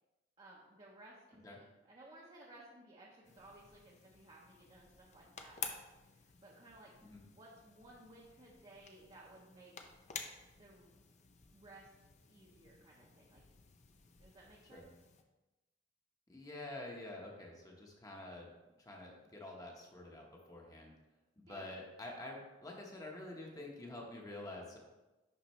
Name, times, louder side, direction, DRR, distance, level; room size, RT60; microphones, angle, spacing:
voice 1, 0.4-5.6 6.0-6.9 7.3-9.7 10.6-11.0 11.5-11.9 12.3-13.4 14.2-14.9 21.5-21.7, right 2 dB, 30° right, -4 dB, 0.9 m, -58 dB
sound 1, 3.2-15.2, left 6 dB, 40° left, 0.6 m, -52 dB
voice 2, 16.3-18.5 18.8-20.9 21.4-24.8, left 1 dB, 20° left, -1 dB, 1.1 m, -48 dB
11.0 x 4.1 x 3.2 m, 1.1 s
head